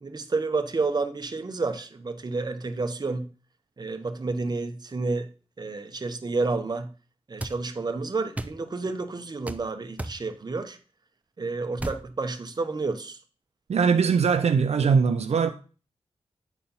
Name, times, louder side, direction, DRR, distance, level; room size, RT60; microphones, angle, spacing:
voice 1, 0.0-3.3 3.8-5.3 5.6-6.9 7.3-10.8 11.4-13.2, right 3 dB, 40° right, 0.9 m, -30 dB
sound 1, 7.4-7.6 8.4-8.6 9.5-9.6 10.0-10.2 11.8-12.0, right 1 dB, 15° right, 0.6 m, -33 dB
voice 2, 13.7-15.5, right 6 dB, 75° right, 0.6 m, -21 dB
9.2 x 4.3 x 5.5 m
wide cardioid pair, 90°, 11 cm